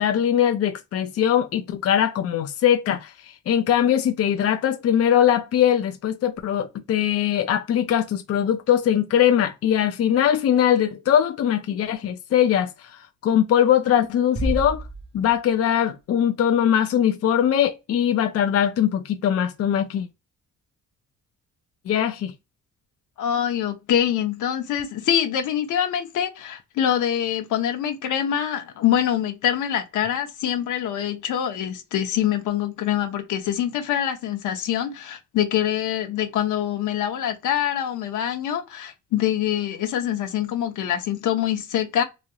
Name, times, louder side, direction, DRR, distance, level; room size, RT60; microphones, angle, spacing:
voice 1, 0.0-12.7 13.2-14.8 15.1-20.1 21.9-22.3, left 10 dB, 50° left, 0.5 m, -21 dB
sound 1, 14.4-15.8, right 1 dB, 20° right, 0.6 m, -30 dB
voice 2, 23.2-42.0, left 10 dB, 80° left, 0.9 m, -25 dB
3.0 x 2.7 x 2.3 m
cardioid pair, 90°, 30 cm